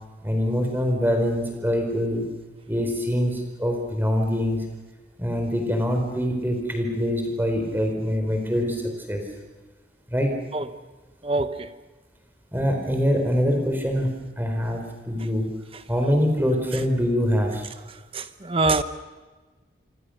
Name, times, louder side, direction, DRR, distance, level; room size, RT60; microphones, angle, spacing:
voice 1, 0.2-2.3 2.7-4.7 5.2-8.8 9.1-9.2 10.1-10.3 12.5-15.5 15.9-17.6, equal, 10° right, 4.6 m, -24 dB
voice 2, 11.2-11.7 18.1-18.8, right 2 dB, 30° right, 0.9 m, -24 dB
27.0 x 25.5 x 6.6 m
head